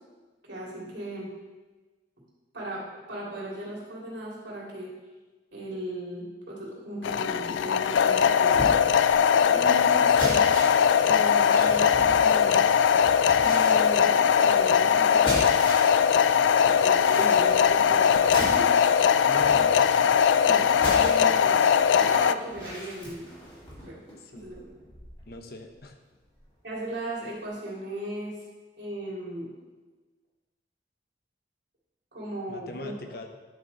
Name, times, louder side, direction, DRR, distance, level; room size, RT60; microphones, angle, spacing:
voice 1, 0.4-1.3 2.5-2.8 3.1-4.9 5.5-8.8 9.5-10.5 11.0-12.6 13.4-15.7 16.7-18.7 19.5-19.6 20.1-20.6 20.9-21.6 22.0-23.4 23.8-24.0 24.3-24.7 26.6-28.3 28.8-29.5 32.1-32.9, right 1 dB, 70° right, -5 dB, 3.0 m, -37 dB
sound 1, 7.0-22.3, left 7 dB, 75° left, 0.3 m, -20 dB
sound 2, 8.4-16.0 16.3-25.3 25.7-25.9 26.3-26.4, equal, 25° left, 2.7 m, -38 dB
voice 2, 19.2-19.9 24.2-24.5 25.3-25.9 32.5-33.3, left 2 dB, 55° left, 5 dB, 0.9 m, -40 dB
10.5 x 6.3 x 4.1 m, 1.3 s
head